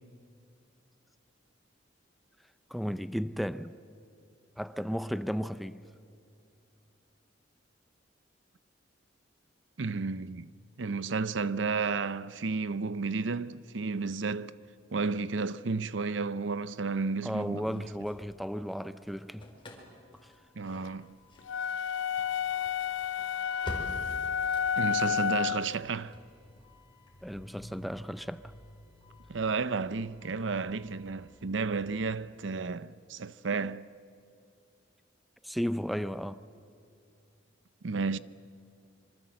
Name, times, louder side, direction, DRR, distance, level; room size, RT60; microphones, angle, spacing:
voice 1, 2.7-3.7 4.6-5.8 17.2-19.5 27.2-28.5 35.4-36.4, equal, ahead, 0.5 m, -34 dB
voice 2, 9.8-10.5 10.8-14.5 14.9-17.9 20.6-21.2 24.8-26.2 29.3-33.9 37.8-38.2, right 4 dB, 80° right, 0.6 m, -32 dB
Engine starting / Slam, 17.4-18.8 19.1-32.1, equal, 25° left, 4.3 m, -49 dB
sound 1, 21.5-25.7, left 7 dB, 85° left, 0.6 m, -30 dB
26.0 x 24.0 x 7.7 m
head